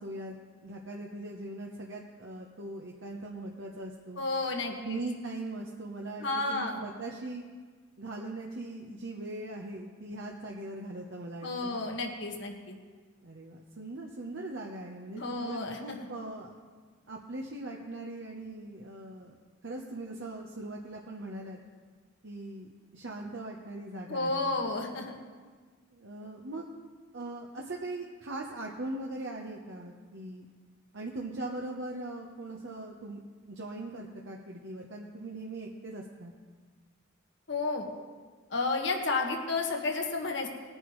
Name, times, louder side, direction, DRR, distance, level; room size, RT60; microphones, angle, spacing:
voice 1, 0.0-4.2 4.8-7.4 8.0-11.8 13.2-16.5 17.1-19.3 19.6-21.6 22.2-24.5 25.9-26.7 27.1-30.5 30.9-33.2 33.5-36.3, right 2 dB, 65° right, -1 dB, 1.0 m, -40 dB
voice 2, 4.2-5.0 6.2-6.8 11.4-12.7 15.1-16.0 24.1-25.2 37.5-37.9 38.5-40.5, left 3 dB, 60° left, 2 dB, 1.6 m, -32 dB
20.0 x 10.0 x 3.2 m, 1.5 s
head